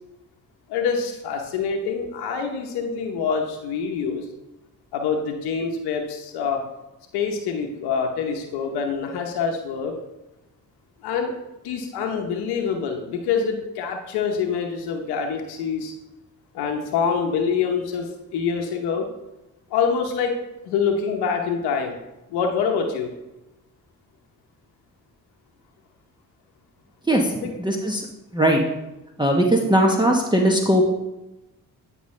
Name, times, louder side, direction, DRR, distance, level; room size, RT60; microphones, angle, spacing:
voice 1, 0.7-4.3 4.9-6.6 7.1-9.9 11.0-11.3 11.6-15.9 16.5-19.1 19.7-20.4 20.6-22.0 22.3-23.1 27.4-27.5, left 6 dB, 85° left, 2 dB, 0.9 m, -25 dB
voice 2, 27.6-28.0 28.3-28.6 29.2-30.9, right 1 dB, 10° right, 1 dB, 1.0 m, -19 dB
9.5 x 5.4 x 3.1 m, 0.96 s
supercardioid pair, 60°, 38 cm